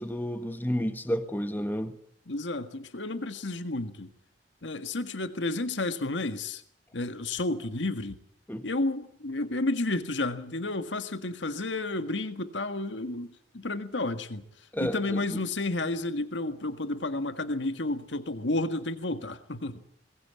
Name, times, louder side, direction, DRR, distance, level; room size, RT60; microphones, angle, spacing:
voice 1, 0.0-1.9 8.5-8.6 14.7-15.4, equal, 10° left, 1.5 m, -31 dB
voice 2, 2.3-4.1 4.6-6.6 6.9-8.2 8.6-14.4 14.8-19.8, left 2 dB, 80° left, 1.7 m, -31 dB
22.0 x 19.5 x 8.5 m
head